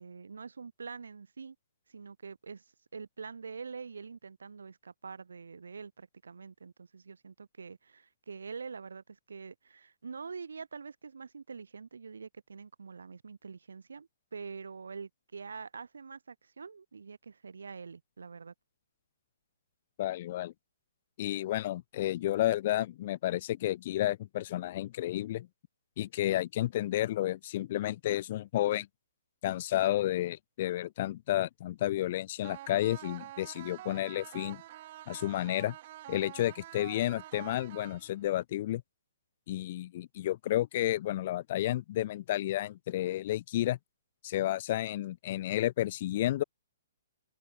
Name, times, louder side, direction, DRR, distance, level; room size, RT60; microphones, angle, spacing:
voice 1, 0.0-1.6 1.9-2.6 2.9-18.5, right 5 dB, 75° right, 5.5 m, -45 dB
voice 2, 20.0-20.5 21.2-25.5 26.0-28.9 29.4-34.6 35.1-35.8 36.1-38.8 39.5-43.8 44.2-46.4, left 14 dB, 45° left, 1.9 m, -31 dB
sound 1, 32.4-38.4, right 14 dB, 45° right, 2.3 m, -47 dB
open air
figure-of-eight pair, 125°, 0 cm